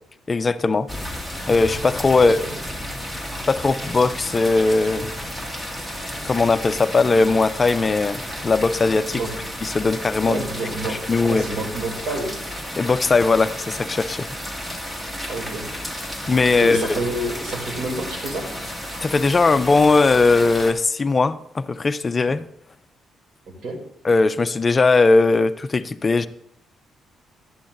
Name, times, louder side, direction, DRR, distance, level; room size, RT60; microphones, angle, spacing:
voice 1, 0.3-0.9 1.5-2.4 3.5-5.1 6.2-9.2 9.6-10.4 10.9-11.5 12.8-14.3 16.3-17.0 19.0-22.5 24.0-26.3, left 3 dB, 30° left, 12 dB, 0.4 m, -19 dB
sound 1, 0.9-20.7, equal, 15° right, 2.0 m, -32 dB
voice 2, 2.1-2.5 9.1-9.3 10.3-12.4 15.3-15.7 16.6-18.5 23.6-23.8, right 2 dB, 65° right, 2 dB, 2.8 m, -28 dB
11.5 x 10.5 x 2.6 m, 0.74 s
cardioid pair, 90°, 0 cm